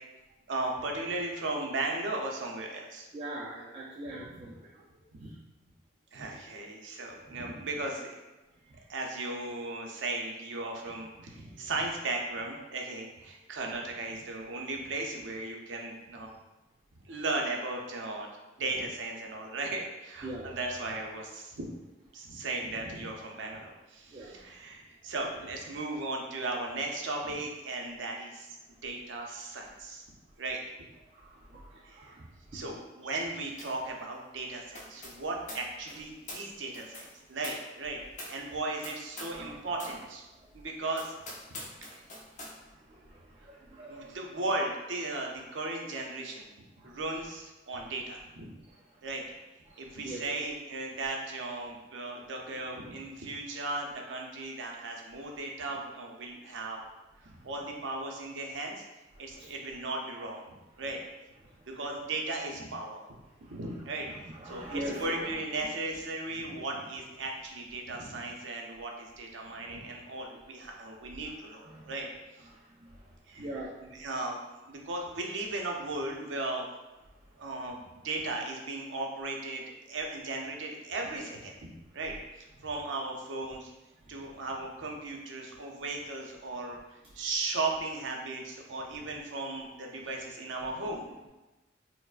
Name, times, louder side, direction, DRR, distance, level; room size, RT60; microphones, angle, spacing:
voice 1, 0.5-3.1 4.4-4.5 5.2-5.3 6.1-8.2 8.9-16.3 17.1-18.3 18.6-21.7 22.1-28.6 28.8-30.0 30.4-30.6 31.8-32.2 32.5-38.0 38.3-40.2 40.5-41.1 41.6-41.9 43.9-46.5 46.8-48.5 49.0-49.2 49.8-56.9 57.2-58.8 59.2-61.0 61.8-63.1 63.5-72.1 72.4-72.5 73.3-73.4 74.0-74.4 74.7-76.6 77.4-77.8 78.0-81.5 81.9-83.7 84.1-86.8 87.2-91.0, right 2 dB, 80° right, 1 dB, 0.5 m, -36 dB
voice 2, 3.1-5.4 6.1-6.3 8.6-8.9 11.4-11.7 18.6-18.7 20.2-20.6 24.1-24.5 25.0-25.1 27.8-27.9 31.0-32.6 33.0-33.2 39.3-39.6 39.8-40.0 40.3-40.7 41.5-44.4 45.4-45.5 46.8-47.3 47.8-47.9 48.6-49.1 49.7-50.5 52.2-52.3 57.2-57.5 59.2-59.5 61.4-61.8 63.3-63.6 64.1-65.4 69.4-69.6 70.3-70.4 71.0-72.1 72.5-73.7 77.1-77.5 82.6-82.7 83.9-84.3 85.7-85.8 88.9-89.0 89.5-89.6 90.0-90.1 90.6-91.3, right 1 dB, 30° right, -5 dB, 0.3 m, -45 dB
sound 1, 33.6-33.9 34.1-39.5 39.7-40.0 40.4-40.5 40.9-42.6, left 1 dB, 40° left, 0.7 m, -45 dB
4.4 x 2.0 x 2.4 m, 1.1 s
head